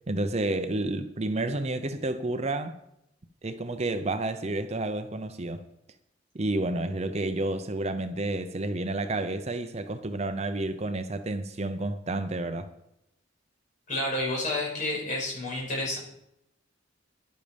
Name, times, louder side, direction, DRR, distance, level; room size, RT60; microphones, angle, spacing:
voice 1, 0.1-2.8 3.4-5.6 6.3-12.7, right 2 dB, 35° right, 0.7 m, -30 dB
voice 2, 13.9-16.0, left 1 dB, 40° left, 5.7 m, -30 dB
12.5 x 11.0 x 5.2 m
head